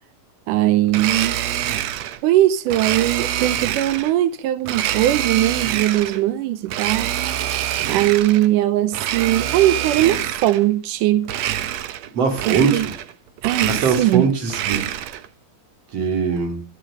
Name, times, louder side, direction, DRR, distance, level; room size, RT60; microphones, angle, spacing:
voice 1, 0.5-1.4 2.2-7.1 7.9-11.3 12.5-12.9 13.4-14.3, right 14 dB, 90° right, 2.4 m, -20 dB
Domestic sounds home sounds, 0.9-2.2 2.7-4.1 4.6-6.2 6.7-8.5 8.9-10.7 11.2-12.1 12.4-13.1 13.4-15.3, right 12 dB, 70° right, 1.8 m, -25 dB
voice 2, 12.1-12.9 13.6-14.9 15.9-16.6, right 5 dB, 55° right, 3.5 m, -21 dB
12.0 x 10.0 x 6.5 m
omnidirectional pair, 3.6 m